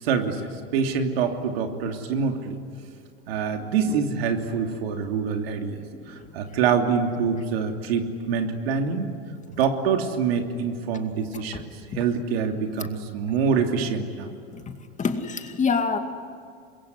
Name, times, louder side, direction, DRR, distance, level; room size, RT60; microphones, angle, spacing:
voice 1, 0.0-2.6 3.3-5.8 6.1-9.1 9.6-11.6 11.9-14.3, right 6 dB, 80° right, 4 dB, 2.9 m, -25 dB
voice 2, 3.6-4.0 4.7-4.8 5.7-6.6 11.5-11.6 11.9-12.0 14.5-16.0, left 5 dB, 25° left, 6 dB, 2.3 m, -29 dB
26.5 x 22.0 x 9.9 m, 2.3 s
supercardioid pair, 110°, 30 cm